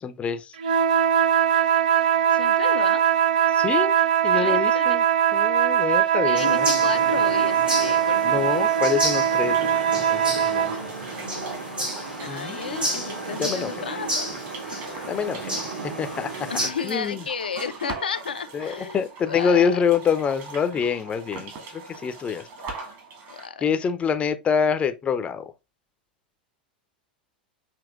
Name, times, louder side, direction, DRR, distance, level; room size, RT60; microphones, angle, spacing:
voice 1, 0.0-0.5 3.5-4.0 4.2-5.0 5.3-6.7 8.2-9.6 9.9-10.7 12.3-12.8 13.4-13.7 15.1-15.6 16.0-16.3 16.8-17.2 18.5-22.4 23.6-25.4, left 7 dB, 25° left, 0.6 m, -26 dB
sound 1, 0.6-10.8, right 9 dB, 65° right, 0.5 m, -21 dB
voice 2, 2.3-3.0 4.3-5.0 6.3-8.7 11.2-14.3 14.6-15.0 16.5-19.0 19.3-19.8 23.3-23.7, left 6 dB, 75° left, 0.5 m, -33 dB
sound 2, 6.4-16.7, right 1 dB, 85° right, 2.3 m, -31 dB
sound 3, 9.1-23.5, right 4 dB, 45° right, 2.1 m, -41 dB
7.0 x 2.9 x 2.4 m
figure-of-eight pair, 90°, 5 cm